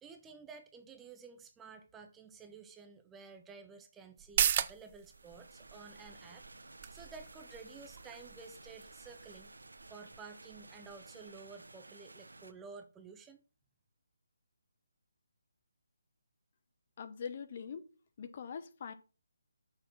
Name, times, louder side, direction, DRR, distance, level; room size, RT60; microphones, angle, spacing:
voice 1, 0.0-9.5 9.9-13.4, right 5 dB, 10° right, 0.8 m, -52 dB
sound 1, 4.2-11.3 11.7-11.8, right 10 dB, 35° right, 0.4 m, -38 dB
sound 2, 5.0-12.5, right 2 dB, 90° right, 0.9 m, -55 dB
voice 2, 17.0-17.9 18.2-18.9, left 6 dB, 45° left, 0.9 m, -43 dB
6.7 x 5.9 x 5.9 m
figure-of-eight pair, 155°, 0 cm